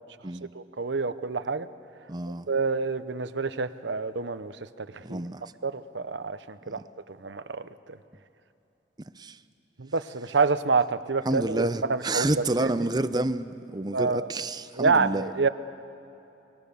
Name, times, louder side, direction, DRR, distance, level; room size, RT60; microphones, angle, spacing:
voice 1, 0.5-1.7 2.5-4.5 4.8-5.2 5.6-6.8 7.2-8.0 9.8-12.3 12.6-12.7 13.9-14.3 14.8-15.5, right 4 dB, 85° right, 12 dB, 0.9 m, -27 dB
voice 2, 2.1-2.5 5.0-5.4 6.7-6.8 9.2-9.4 11.2-15.2, right 2 dB, 25° right, 12 dB, 0.7 m, -29 dB
30.0 x 21.5 x 7.0 m, 2.9 s
head